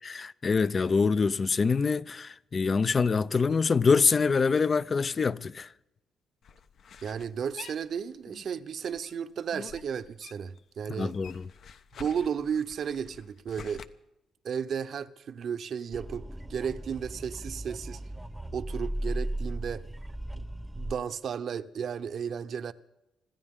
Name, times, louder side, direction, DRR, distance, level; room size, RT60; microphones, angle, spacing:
voice 1, 0.0-5.7 10.9-11.5, left 5 dB, 35° left, 0.6 m, -25 dB
sound 1, 6.4-8.5 8.8-10.6 10.9-13.9, left 7 dB, 60° left, 0.9 m, -48 dB
voice 2, 7.0-11.1 12.0-13.8 14.4-18.0 18.5-19.9 20.3-20.4 20.7-22.7, right 7 dB, 60° right, 0.9 m, -34 dB
sound 2, 15.9-20.9, right 1 dB, 5° right, 0.9 m, -36 dB
25.5 x 14.0 x 3.8 m
cardioid pair, 90°, 0 cm